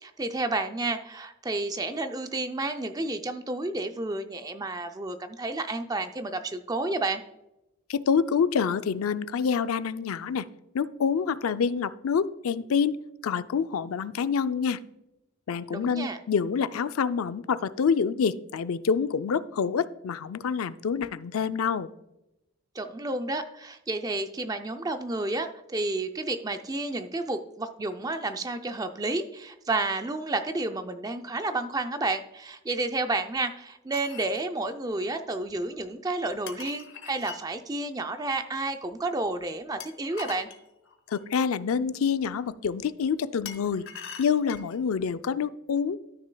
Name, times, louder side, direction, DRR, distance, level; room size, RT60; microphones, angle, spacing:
voice 1, 0.0-7.2 15.7-16.2 22.7-40.5, right 2 dB, 15° right, 8 dB, 0.4 m, -31 dB
voice 2, 7.9-10.4 10.7-13.0 13.2-14.8 15.5-21.9 41.1-43.8 44.2-46.0, left 6 dB, 85° left, 13 dB, 0.4 m, -27 dB
sound 1, 33.9-34.4 36.5-37.4 39.8-41.2 43.4-44.8, left 7 dB, 65° left, 1.0 m, -42 dB
13.0 x 6.4 x 2.2 m, 0.91 s
head